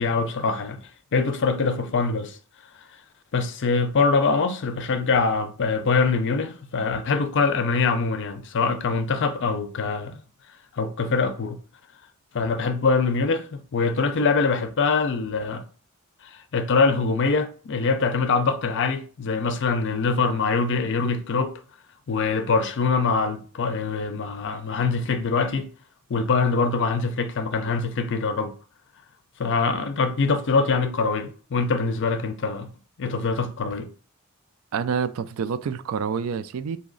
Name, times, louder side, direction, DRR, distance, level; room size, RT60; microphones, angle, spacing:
voice 1, 0.0-2.4 3.3-10.2 10.8-11.6 12.3-15.6 16.5-21.5 22.1-25.7 26.1-28.5 29.4-32.7 33.0-33.9, left 4 dB, 60° left, 0.5 m, -23 dB
voice 2, 34.7-36.8, right 6 dB, 70° right, 0.3 m, -27 dB
4.0 x 2.8 x 3.8 m
head